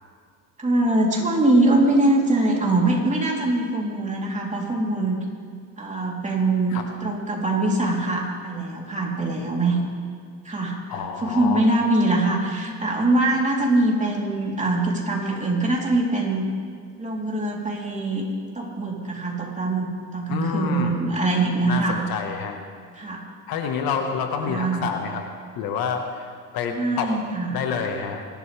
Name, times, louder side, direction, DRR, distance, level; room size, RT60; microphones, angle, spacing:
voice 1, 0.6-5.2 5.8-9.8 10.4-10.8 11.2-16.4 17.0-18.3 18.5-22.0 23.0-23.2 24.4-24.8 26.7-27.6, right 2 dB, 20° right, -2 dB, 3.7 m, -23 dB
voice 2, 10.9-11.6 20.3-21.0 21.7-22.6 23.2-25.2 25.6-26.3 26.5-27.2 27.5-28.2, left 6 dB, 65° left, 4 dB, 1.7 m, -28 dB
24.5 x 12.5 x 3.6 m, 2.1 s
supercardioid pair, 90°, 39 cm